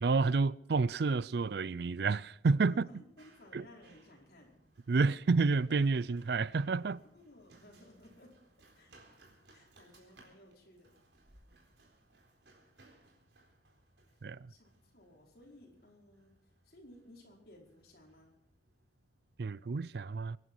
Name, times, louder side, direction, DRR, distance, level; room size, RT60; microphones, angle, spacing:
voice 1, 0.0-2.9 3.5-3.6 4.9-7.0 14.2-14.5 19.4-20.4, right 4 dB, 65° right, 0.4 m, -29 dB
Run, 2.1-19.4, right 2 dB, 80° right, 4.1 m, -65 dB
voice 2, 2.7-4.6 7.1-8.4 8.7-8.9 9.5-11.0 14.5-16.4 16.6-18.3, left 1 dB, 55° left, 4.9 m, -58 dB
24.5 x 11.0 x 4.6 m
head